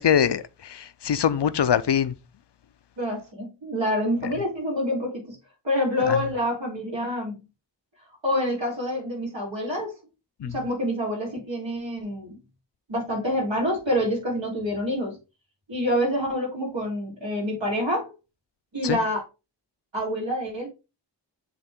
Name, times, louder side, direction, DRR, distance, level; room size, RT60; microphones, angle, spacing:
voice 1, 0.0-2.1 6.1-6.2 10.4-10.6 18.8-19.0, left 8 dB, 70° left, 0.6 m, -23 dB
voice 2, 3.0-5.4 5.6-7.4 8.2-9.9 10.4-12.4 12.9-15.2 15.7-18.1 18.7-19.2 19.9-20.7, left 1 dB, 90° right, 3.8 m, -27 dB
7.8 x 3.7 x 3.7 m
wide cardioid pair, 60°, 44 cm